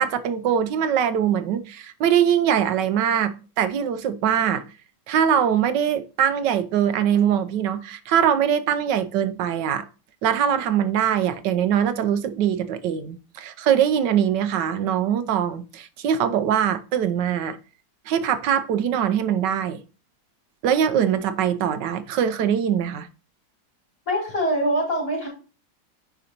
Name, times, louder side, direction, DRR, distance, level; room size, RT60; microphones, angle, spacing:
voice 1, 0.0-4.6 5.1-9.8 10.2-17.6 18.1-19.8 20.6-23.1, right 9 dB, 80° right, 1.4 m, -22 dB
voice 2, 24.1-25.3, equal, 55° left, 4.5 m, -23 dB
9.3 x 5.1 x 2.8 m
omnidirectional pair, 1.9 m